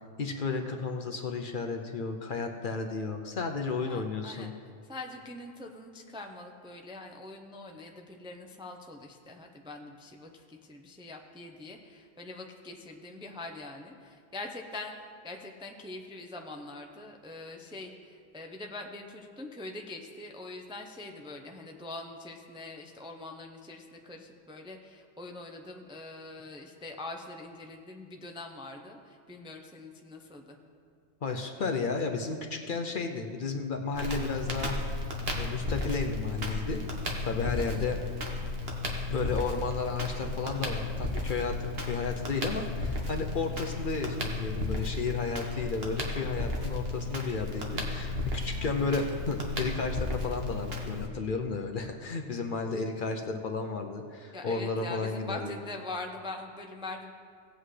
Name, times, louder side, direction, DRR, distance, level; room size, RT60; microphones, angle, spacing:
voice 1, 0.2-4.5 31.2-35.1 35.4-36.8 37.2-38.0 39.1-55.6, left 4 dB, 55° left, 4 dB, 0.7 m, -33 dB
voice 2, 3.8-4.5 4.9-15.0 15.2-30.6 37.6-37.9 48.5-49.0 54.3-57.1, left 2 dB, 5° right, 3 dB, 0.4 m, -43 dB
Crackle, 33.9-51.1, left 2 dB, 55° right, 1.5 m, -34 dB
17.5 x 8.0 x 3.2 m, 2.2 s
omnidirectional pair, 1.2 m